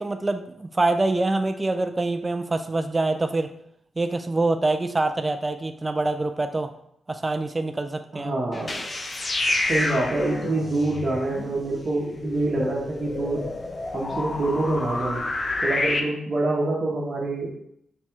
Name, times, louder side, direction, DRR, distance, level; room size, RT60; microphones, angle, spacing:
voice 1, 0.0-3.5 4.0-6.7 7.1-8.3, right 2 dB, 25° right, 7 dB, 0.3 m, -25 dB
voice 2, 8.1-8.9 9.5-13.4 13.9-15.2 15.6-17.5, right 2 dB, 55° right, -5 dB, 0.9 m, -26 dB
sound 1, 8.5-16.0, left 2 dB, 40° left, 0.6 m, -29 dB
4.2 x 2.3 x 4.4 m, 0.73 s
cardioid pair, 60°, 0 cm